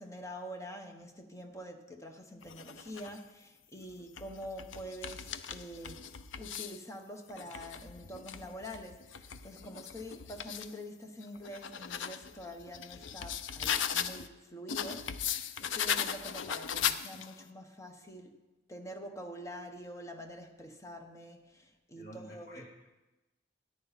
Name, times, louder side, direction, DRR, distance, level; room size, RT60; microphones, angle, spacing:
voice 1, 0.0-6.1 6.4-18.4 18.7-22.6, equal, 15° left, 4 dB, 1.1 m, -46 dB
sound 1, 2.4-3.2 3.9-6.8 7.3-10.7 11.2-14.3 14.7-17.4, left 8 dB, 75° left, 0.5 m, -38 dB
voice 2, 22.0-22.9, equal, 55° left, -2 dB, 2.6 m, -50 dB
13.5 x 10.0 x 4.1 m, 1.0 s
head